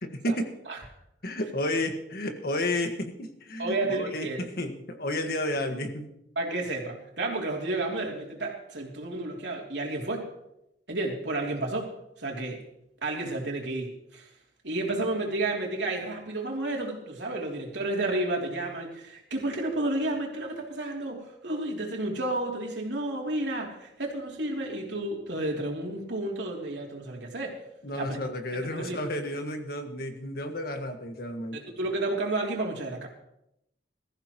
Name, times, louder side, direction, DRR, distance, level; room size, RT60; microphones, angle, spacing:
voice 1, 0.0-0.5 1.2-6.1 27.8-31.6, left 1 dB, 60° left, 5 dB, 1.6 m, -32 dB
voice 2, 3.6-4.4 6.3-10.3 10.9-11.9 12.2-12.6 13.0-14.3 14.6-27.6 27.9-28.2 28.5-29.0 31.5-33.1, right 2 dB, 80° right, 0 dB, 3.1 m, -31 dB
21.5 x 14.5 x 3.1 m, 0.83 s
head